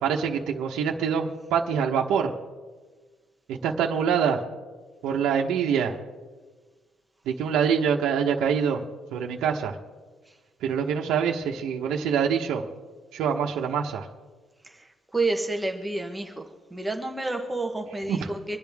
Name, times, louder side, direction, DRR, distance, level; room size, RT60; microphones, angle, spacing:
voice 1, 0.0-2.3 3.5-4.4 5.0-5.9 7.3-8.8 9.1-9.8 10.6-12.6 13.1-14.1 18.1-18.2, right 7 dB, 80° right, 0 dB, 1.1 m, -25 dB
voice 2, 14.6-18.6, right 2 dB, 5° right, 3 dB, 1.1 m, -30 dB
25.5 x 10.5 x 3.6 m, 1.4 s
cardioid pair, 165°, 0 cm